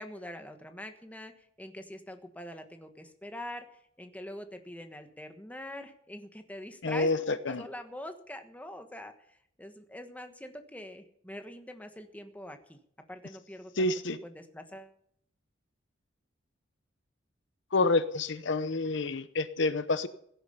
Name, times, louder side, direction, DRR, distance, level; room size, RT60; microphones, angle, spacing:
voice 1, 0.0-3.7 4.0-12.8 13.1-14.9, left 1 dB, 10° left, 6 dB, 1.3 m, -44 dB
voice 2, 6.8-7.6 13.8-14.2 17.7-20.1, left 3 dB, 65° left, 13 dB, 0.8 m, -28 dB
16.5 x 10.0 x 5.6 m, 0.69 s
head